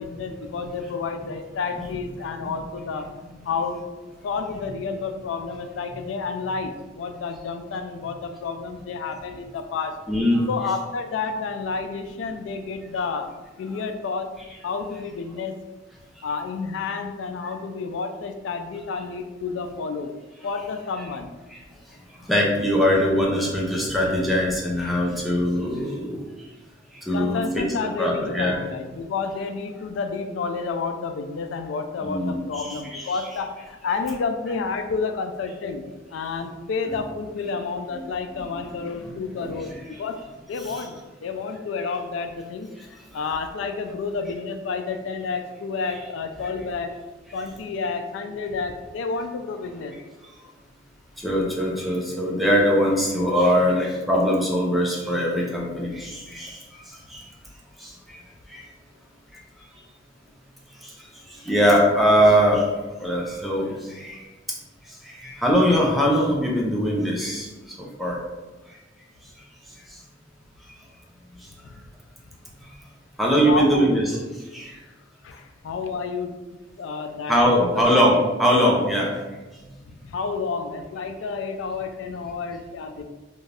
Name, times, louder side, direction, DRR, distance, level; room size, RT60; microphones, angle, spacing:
voice 1, 0.0-3.1 3.4-3.8 4.2-10.0 10.5-14.3 14.6-15.6 16.2-20.1 20.4-21.3 27.1-35.9 36.1-40.2 40.5-41.0 41.2-46.9 47.3-50.0 71.6-71.7 73.5-74.0 75.2-76.3 76.8-78.1 79.9-83.0, left 4 dB, 90° left, 7 dB, 0.3 m, -30 dB
voice 2, 10.1-10.4 21.5-21.6 22.3-26.2 27.1-27.7 28.0-28.6 32.0-33.2 36.9-37.0 37.9-38.0 38.5-38.6 39.0-39.1 39.4-39.8 40.6-40.9 46.4-46.5 47.3-47.4 51.2-56.8 57.1-57.2 57.8-58.2 58.5-58.6 60.8-60.9 61.4-62.7 63.0-64.2 65.0-67.5 67.8-68.2 73.2-74.2 74.5-74.7 77.3-79.1, equal, ahead, -3 dB, 0.5 m, -22 dB
2.5 x 2.3 x 3.2 m, 1.2 s
head